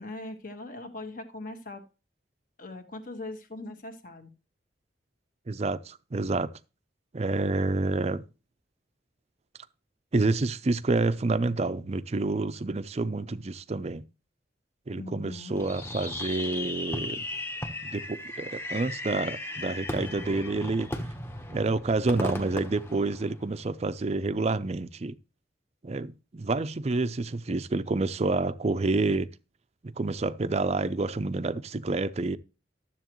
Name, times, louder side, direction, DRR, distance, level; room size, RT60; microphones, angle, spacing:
voice 1, 0.0-1.8 2.6-4.3 15.0-15.6, left 2 dB, 50° left, 1.7 m, -40 dB
voice 2, 5.5-6.5 7.1-8.2 10.1-14.0 14.9-17.2 17.8-20.9 21.5-25.2 25.8-29.3 29.8-32.4, right 3 dB, 35° right, 0.5 m, -28 dB
Fireworks, 15.6-23.7, left 1 dB, 15° left, 1.0 m, -36 dB
12.5 x 7.5 x 3.1 m
head